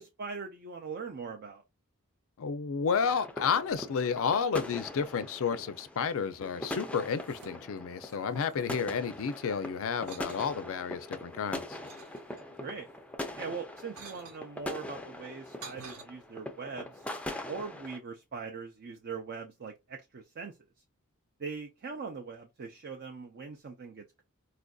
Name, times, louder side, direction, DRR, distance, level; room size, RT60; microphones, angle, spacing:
voice 1, 0.0-1.6 12.6-12.9 13.4-17.1 17.5-20.6 21.4-24.2, right 5 dB, 50° right, 0.5 m, -41 dB
voice 2, 2.4-11.8, left 6 dB, 65° left, 0.4 m, -31 dB
sound 1, 2.9-18.0, left 1 dB, 5° left, 0.4 m, -42 dB
sound 2, 6.9-7.8 8.1-9.4 9.9-10.6 11.2-12.7 13.5-14.4 15.2-16.0, right 4 dB, 80° right, 1.0 m, -51 dB
4.2 x 2.5 x 2.3 m
head